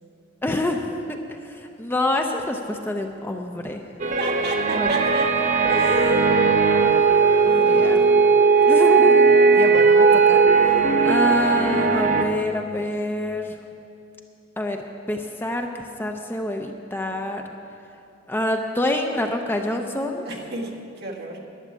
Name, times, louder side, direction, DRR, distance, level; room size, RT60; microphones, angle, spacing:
voice 1, 0.4-3.8 4.7-4.9 7.5-8.0 8.7-10.7 11.0-13.6 14.6-14.8 15.1-17.4 18.3-20.3, left 1 dB, 10° left, 3 dB, 0.6 m, -26 dB
sound 1, 4.0-12.2, right 4 dB, 40° right, 0.7 m, -17 dB
voice 2, 4.2-5.3 5.7-6.3 7.5-7.9 20.2-21.4, right 2 dB, 55° right, 0 dB, 1.6 m, -30 dB
12.0 x 7.1 x 9.6 m, 2.6 s
head